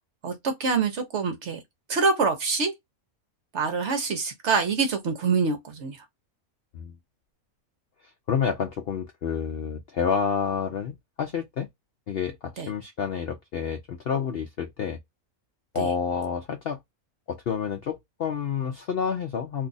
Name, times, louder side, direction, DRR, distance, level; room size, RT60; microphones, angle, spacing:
voice 1, 0.2-1.6 1.9-2.7 3.5-6.0 12.6-12.7 15.8-15.9, right 4 dB, 60° right, 0.9 m, -25 dB
voice 2, 8.0-11.7 12.1-15.0 15.7-16.8 17.3-19.7, left 7 dB, 65° left, 0.6 m, -29 dB
2.7 x 2.3 x 3.8 m
omnidirectional pair, 1.5 m